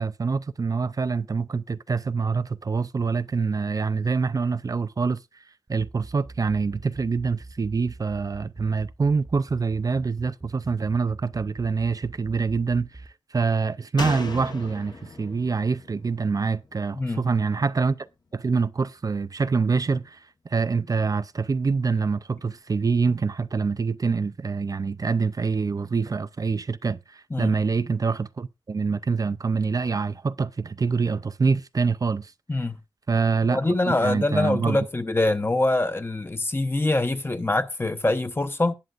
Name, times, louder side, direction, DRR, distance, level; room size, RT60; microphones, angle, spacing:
voice 1, 0.0-18.1 18.3-32.3 33.1-33.6 34.0-34.8, right 4 dB, 45° right, 0.4 m, -25 dB
sound 1, 5.7-13.1, right 2 dB, 25° right, 0.9 m, -43 dB
Slam, 14.0-17.5 17.8-17.9, left 3 dB, 55° left, 1.1 m, -37 dB
voice 2, 32.5-32.8 33.5-38.7, left 2 dB, 25° left, 0.9 m, -24 dB
19.0 x 7.0 x 2.5 m
wide cardioid pair, 75°, 9 cm